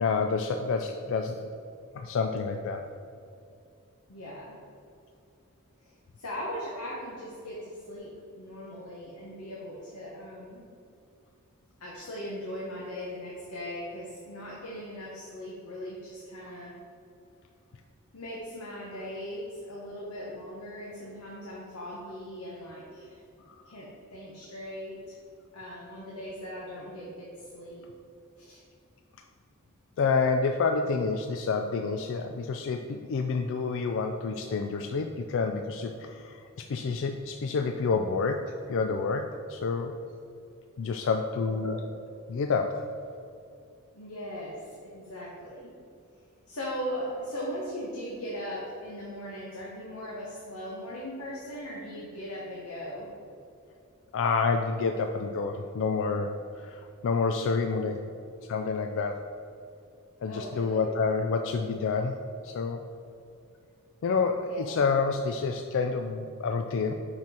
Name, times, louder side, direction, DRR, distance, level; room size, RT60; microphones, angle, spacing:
voice 1, 0.0-1.4 1.9-2.9 23.5-23.6 30.0-38.4 38.7-39.9 40.8-41.7 42.3-42.7 54.1-58.0 58.4-59.2 60.2-62.2 62.4-62.8 64.0-66.9, left 4 dB, 60° left, 5 dB, 0.4 m, -28 dB
voice 2, 4.1-4.6 5.8-10.6 11.8-16.8 18.1-23.2 23.6-25.2 25.5-27.9 28.4-28.6 41.5-41.7 43.9-45.7 46.5-53.1 60.3-60.9 64.4-64.7, equal, 85° left, -5 dB, 1.2 m, -39 dB
6.1 x 6.0 x 4.3 m, 2.5 s
head